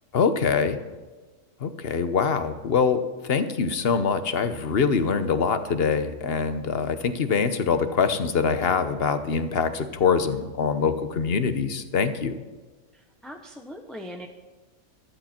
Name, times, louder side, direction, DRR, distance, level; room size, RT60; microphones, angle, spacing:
voice 1, 0.1-0.8 1.6-12.4, left 5 dB, 50° left, 10 dB, 1.1 m, -24 dB
voice 2, 12.9-14.3, equal, ahead, 2 dB, 0.9 m, -40 dB
14.5 x 13.0 x 4.4 m, 1.3 s
omnidirectional pair, 1.4 m